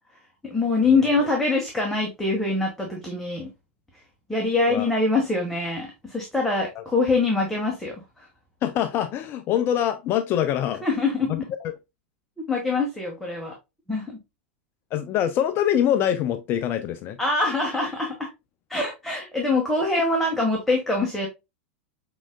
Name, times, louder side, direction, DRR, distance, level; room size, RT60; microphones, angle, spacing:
voice 1, 0.4-3.5 4.3-8.3 10.8-11.4 12.4-13.6 13.9-14.2 17.2-18.3 18.7-21.3, left 3 dB, 5° left, 1.4 m, -24 dB
voice 2, 8.6-10.9 11.3-11.7 14.9-17.2, left 10 dB, 40° left, 0.4 m, -24 dB
6.1 x 3.7 x 2.2 m
hypercardioid pair, 105°, 6 cm